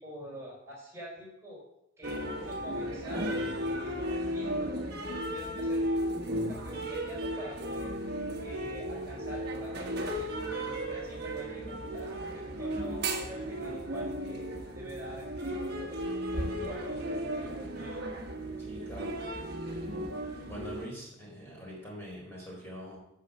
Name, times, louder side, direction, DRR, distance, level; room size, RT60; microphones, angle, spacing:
voice 1, 0.0-1.6 2.0-5.8 6.2-8.0 8.4-16.0 16.3-18.0, right 1 dB, 15° right, -5 dB, 4.1 m, -46 dB
sound 1, 2.0-20.9, right 1 dB, 50° right, 1.5 m, -35 dB
voice 2, 18.7-19.1 19.7-20.1 20.4-23.0, equal, 10° left, -5 dB, 4.4 m, -44 dB
9.4 x 6.6 x 6.6 m, 0.85 s
head